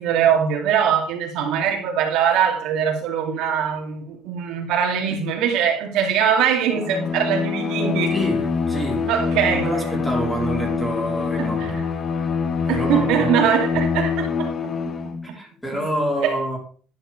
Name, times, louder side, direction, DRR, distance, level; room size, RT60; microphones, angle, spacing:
voice 1, 0.0-8.1 9.1-9.7 11.4-11.8 12.7-14.8 15.3-15.4 16.2-16.3, right 8 dB, 75° right, 2.6 m, -22 dB
Bowed string instrument, 6.7-15.3, left 5 dB, 30° left, 1.0 m, -25 dB
voice 2, 8.1-9.1 9.5-11.8 12.7-13.5 15.2-16.6, equal, 5° left, 3.5 m, -27 dB
11.0 x 10.0 x 3.4 m
cardioid pair, 165°, 0 cm